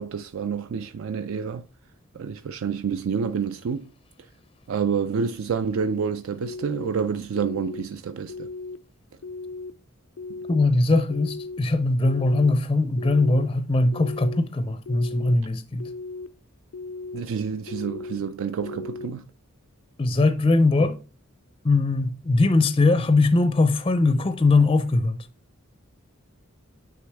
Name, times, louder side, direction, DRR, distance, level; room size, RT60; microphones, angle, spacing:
voice 1, 0.0-1.7 2.1-3.9 4.7-8.5 17.1-19.3, right 6 dB, 75° right, 0.4 m, -28 dB
sound 1, 6.4-6.9 7.3-7.8 8.3-8.8 9.2-9.7 10.2-10.7 11.1-11.6 12.0-12.5 13.0-13.5 13.9-14.4 14.8-15.3 15.8-16.3 16.7-17.2 17.7-18.2 18.6-19.1, left 3 dB, 85° left, 0.4 m, -36 dB
voice 2, 10.5-15.9 20.0-21.0 21.6-25.3, left 2 dB, 25° left, 0.4 m, -21 dB
9.4 x 3.4 x 3.4 m
head